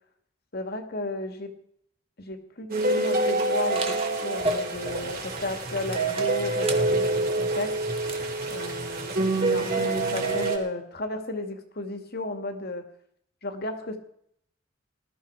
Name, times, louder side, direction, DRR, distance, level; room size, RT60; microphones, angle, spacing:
voice 1, 0.5-1.5 2.2-7.8 8.5-12.9 13.4-14.0, left 2 dB, 50° left, 6 dB, 2.4 m, -34 dB
sound 1, 2.7-10.6, right 2 dB, 45° right, 5.0 m, -27 dB
sound 2, 3.4-10.5, right 1 dB, 30° right, 2.4 m, -36 dB
20.5 x 13.5 x 4.9 m, 0.68 s
head